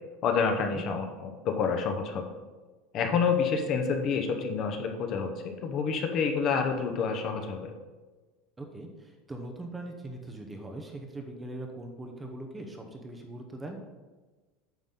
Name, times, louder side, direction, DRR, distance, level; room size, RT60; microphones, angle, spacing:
voice 1, 0.2-2.3 2.9-7.7, left 5 dB, 35° left, 4 dB, 0.8 m, -28 dB
voice 2, 8.6-13.8, right 2 dB, 10° right, 3 dB, 0.7 m, -41 dB
9.2 x 6.0 x 3.8 m, 1.3 s
cardioid pair, 170°, 0 cm